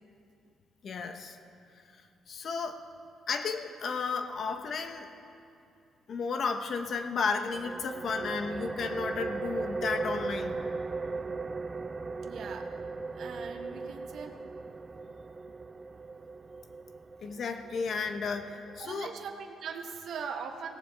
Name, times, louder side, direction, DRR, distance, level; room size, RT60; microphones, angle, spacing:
voice 1, 0.8-1.4 2.3-2.8 3.3-5.1 6.1-10.6 17.2-19.1, left 5 dB, 55° left, 7 dB, 1.0 m, -33 dB
sound 1, 7.5-18.8, right 4 dB, 30° right, 0.4 m, -38 dB
voice 2, 12.2-12.8 13.1-14.4 18.8-20.8, right 6 dB, 65° right, 5 dB, 1.1 m, -40 dB
17.5 x 16.5 x 3.4 m, 2.5 s
cardioid pair, 90°, 0 cm